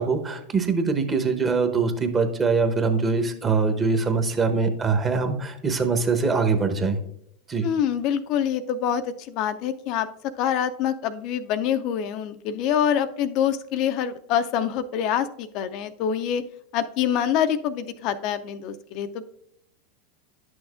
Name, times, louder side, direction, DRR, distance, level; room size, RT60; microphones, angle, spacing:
voice 1, 0.0-7.0 7.5-7.7, right 4 dB, 25° right, 6 dB, 0.9 m, -23 dB
voice 2, 7.6-10.1 10.4-16.4 16.7-19.3, left 9 dB, 55° left, 10 dB, 0.4 m, -25 dB
10.0 x 6.2 x 2.4 m, 0.73 s
hypercardioid pair, 95°, 0 cm